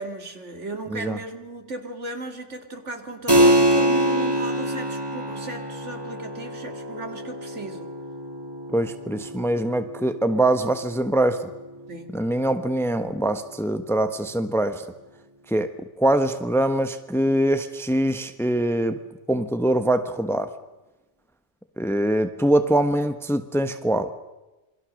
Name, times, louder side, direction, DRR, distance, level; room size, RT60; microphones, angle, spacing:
voice 1, 0.0-7.9 11.9-12.2 22.0-22.1, right 2 dB, 80° right, 5 dB, 2.7 m, -36 dB
Keyboard (musical), 3.3-13.5, right 1 dB, 20° right, 2.0 m, -26 dB
voice 2, 8.7-11.5 12.1-14.8 15.5-19.0 19.3-20.5 21.8-24.1, right 1 dB, ahead, 9 dB, 1.1 m, -23 dB
27.5 x 23.0 x 6.5 m, 1.1 s
omnidirectional pair, 1.2 m